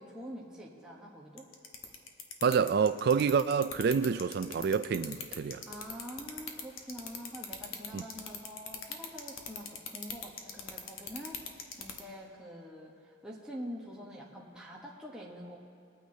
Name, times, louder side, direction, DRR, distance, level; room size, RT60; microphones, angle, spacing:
voice 1, 0.0-1.5 5.6-11.5 11.8-15.6, equal, 5° right, 1.0 m, -45 dB
sound 1, 1.4-12.0, left 7 dB, 85° left, 1.0 m, -39 dB
voice 2, 2.4-5.6 7.9-8.0, right 6 dB, 50° right, 0.3 m, -28 dB
21.0 x 9.1 x 2.8 m
head